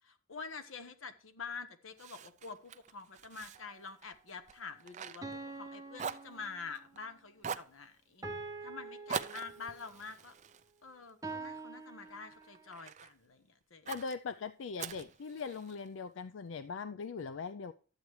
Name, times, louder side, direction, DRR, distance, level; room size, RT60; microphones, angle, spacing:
voice 1, 0.3-8.3 8.6-10.3 10.8-13.9, left 5 dB, 90° left, 1.1 m, -47 dB
Fire, 2.0-5.7 5.9-7.0 7.4-7.8 9.1-11.5 12.0-13.1 13.9-14.2 14.8-15.9, right 7 dB, 35° right, 0.5 m, -44 dB
sound 1, 3.6-3.7 5.2-6.9 8.2-9.9 11.2-12.7, right 3 dB, 20° right, 0.9 m, -45 dB
voice 2, 13.9-17.7, left 5 dB, 70° left, 0.4 m, -40 dB
12.0 x 8.2 x 3.1 m
head